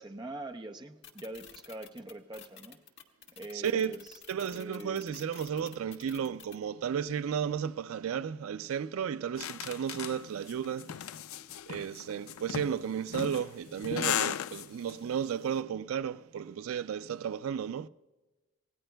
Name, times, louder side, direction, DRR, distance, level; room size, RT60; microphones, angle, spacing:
voice 1, 0.0-2.8 3.3-4.2 4.5-5.0, right 2 dB, 20° right, 0.7 m, -43 dB
sound 1, 1.0-6.6, left 8 dB, 55° left, 1.6 m, -50 dB
voice 2, 3.5-3.9 4.3-11.0 11.7-17.9, right 8 dB, 85° right, 0.4 m, -33 dB
sound 2, 9.4-14.9, left 9 dB, 85° left, 0.4 m, -36 dB
27.0 x 18.0 x 2.2 m
head